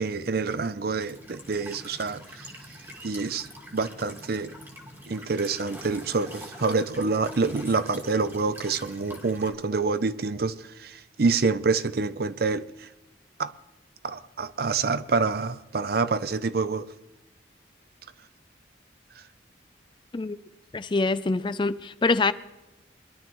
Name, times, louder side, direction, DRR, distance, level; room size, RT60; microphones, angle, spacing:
voice 1, 0.0-2.5 3.0-4.5 5.1-12.9 13.4-13.5 14.0-16.9, right 4 dB, 50° right, 0.5 m, -27 dB
Walk footsteps / Chirp tweet / Stream, 1.0-9.5, equal, 10° right, 1.8 m, -45 dB
voice 2, 20.7-22.3, left 3 dB, 25° left, 0.4 m, -25 dB
22.0 x 11.5 x 3.1 m
head